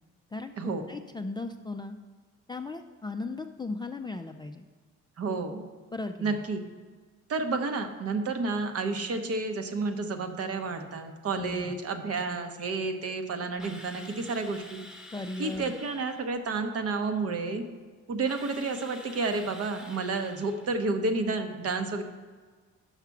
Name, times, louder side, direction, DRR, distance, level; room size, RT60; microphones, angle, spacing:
voice 1, 0.3-2.0 2.5-4.6 5.9-6.4 11.3-11.7 15.1-15.7, left 3 dB, 15° left, 5 dB, 0.3 m, -37 dB
voice 2, 5.2-5.7 6.2-6.6 7.3-14.8 15.4-17.6 18.1-22.0, right 3 dB, 55° right, 6 dB, 0.9 m, -30 dB
Drill, 13.6-16.3 18.3-20.8, left 1 dB, ahead, 1.0 m, -48 dB
5.8 x 5.8 x 5.8 m, 1.5 s
cardioid pair, 90°, 30 cm